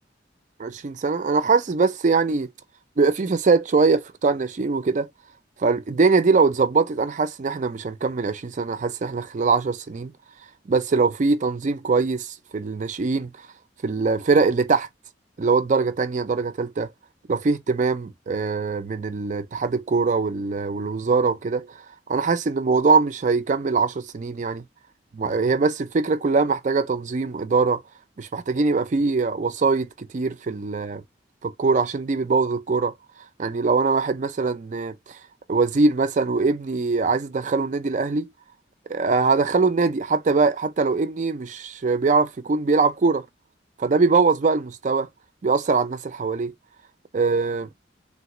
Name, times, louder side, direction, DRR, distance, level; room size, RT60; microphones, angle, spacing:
voice 1, 0.6-2.5 3.0-5.1 5.6-10.1 10.7-13.3 13.8-14.9 15.4-16.9 17.3-21.7 22.1-24.6 25.1-27.8 28.2-31.0 31.4-32.9 33.4-35.0 35.5-38.3 38.9-43.3 43.8-45.1 45.4-46.5 47.1-47.7, right 4 dB, 40° right, 0.4 m, -22 dB
3.3 x 2.2 x 2.9 m
head